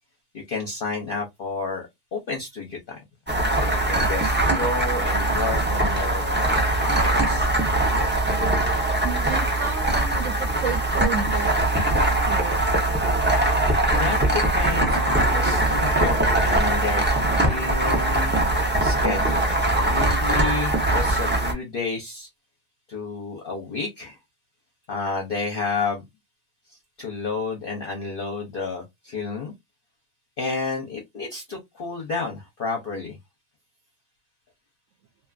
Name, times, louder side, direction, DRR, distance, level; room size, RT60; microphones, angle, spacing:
voice 1, 0.3-7.5 13.9-17.0 17.4-18.4 18.8-22.3 22.9-24.2 24.9-26.0 26.7-29.5 30.4-33.2, left 4 dB, 50° left, 0.8 m, -31 dB
sound 1, 3.3-21.5, right 1 dB, 15° right, 0.4 m, -22 dB
voice 2, 9.0-12.6, right 7 dB, 75° right, 1.0 m, -32 dB
2.7 x 2.4 x 2.2 m
omnidirectional pair, 1.4 m